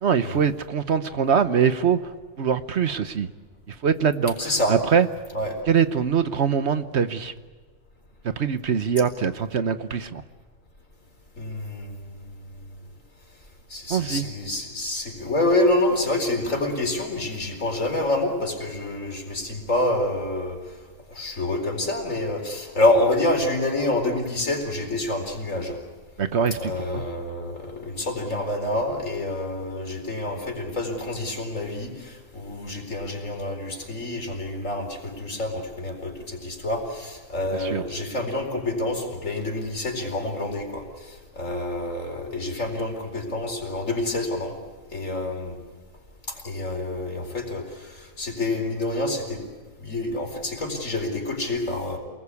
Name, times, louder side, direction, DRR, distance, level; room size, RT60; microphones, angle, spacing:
voice 1, 0.0-2.1 2.4-3.3 3.7-5.1 5.7-7.3 8.4-10.2 13.9-14.3 26.2-27.0 37.6-37.8, right 7 dB, 60° right, 11 dB, 1.1 m, -23 dB
voice 2, 4.4-4.8 5.3-5.6 11.4-12.8 13.7-20.6 21.1-25.8 26.6-44.6 44.9-45.6 46.3-49.4 49.8-52.0, left 2 dB, 70° left, 3 dB, 4.8 m, -27 dB
28.0 x 20.5 x 8.4 m, 1.5 s
omnidirectional pair, 1.4 m